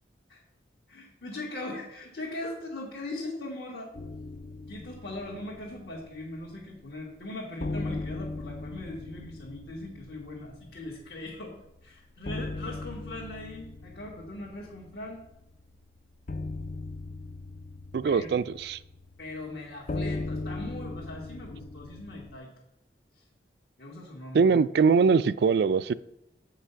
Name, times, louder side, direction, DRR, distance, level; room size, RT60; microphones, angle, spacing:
voice 1, 0.9-3.9 4.7-11.5 11.8-15.2 18.1-18.4 19.2-22.5 23.8-24.6, left 2 dB, 65° left, 1.7 m, -40 dB
sound 1, 3.9-6.8 7.1-7.2 7.6-22.4, left 2 dB, 50° left, 0.4 m, -39 dB
voice 2, 17.9-18.8 24.3-25.9, right 5 dB, 65° right, 0.3 m, -22 dB
8.0 x 5.8 x 5.6 m
head